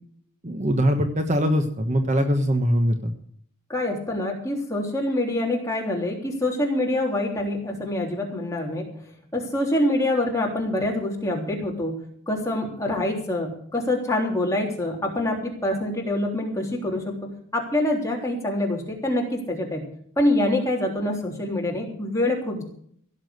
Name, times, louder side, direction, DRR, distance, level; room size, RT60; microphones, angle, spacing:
voice 1, 0.4-3.1, equal, 30° right, 5 dB, 1.2 m, -22 dB
voice 2, 3.7-8.9 9.3-12.0 12.3-17.1 17.5-19.8 20.2-22.6, left 1 dB, 15° left, -1 dB, 3.4 m, -25 dB
16.5 x 7.3 x 7.9 m, 0.62 s
head